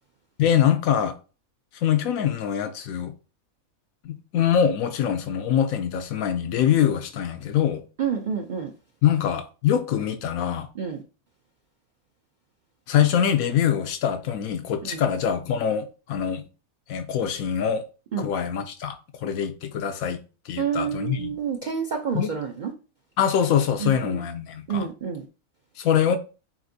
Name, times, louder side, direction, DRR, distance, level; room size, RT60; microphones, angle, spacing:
voice 1, 0.4-1.2 1.8-3.1 4.0-7.8 9.0-10.7 12.9-16.4 16.9-17.8 18.2-21.3 22.1-22.3 23.2-24.9 25.8-26.2, left 9 dB, 80° left, 1.0 m, -24 dB
voice 2, 8.0-8.7 10.8-11.0 14.9-15.0 18.1-18.3 20.6-22.7 23.8-24.2 24.7-25.2, right 7 dB, 60° right, 0.4 m, -28 dB
7.1 x 2.6 x 2.7 m
omnidirectional pair, 1.5 m